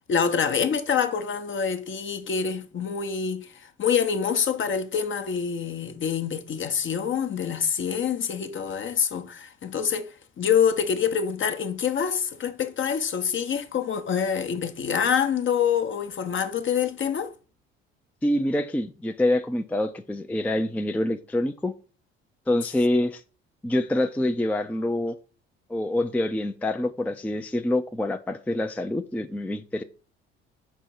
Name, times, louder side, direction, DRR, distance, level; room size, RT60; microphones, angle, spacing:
voice 1, 0.1-17.3, left 7 dB, 40° left, 0.8 m, -26 dB
voice 2, 18.2-21.7 22.5-23.2 23.6-25.1 25.7-29.8, left 1 dB, 5° left, 0.5 m, -26 dB
6.3 x 4.5 x 4.3 m
hypercardioid pair, 50°, 31 cm